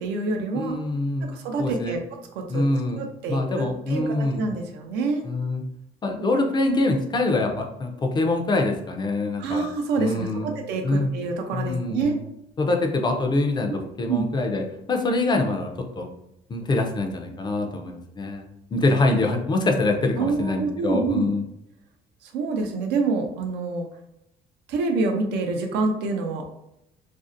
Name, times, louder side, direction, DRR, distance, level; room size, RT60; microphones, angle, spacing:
voice 1, 0.0-0.8 1.2-2.0 2.4-2.6 2.9-5.2 9.4-12.2 14.1-14.2 20.2-21.3 22.2-23.9 24.7-26.5, right 3 dB, 85° right, 4 dB, 0.5 m, -27 dB
voice 2, 0.5-1.3 1.6-2.0 2.5-3.0 3.3-4.5 5.2-5.6 6.0-9.7 10.0-10.5 10.8-11.1 11.5-12.1 12.6-16.1 16.5-21.4, left 2 dB, 25° left, 3 dB, 0.4 m, -25 dB
2.5 x 2.0 x 2.4 m, 0.82 s
cardioid pair, 110°, 17 cm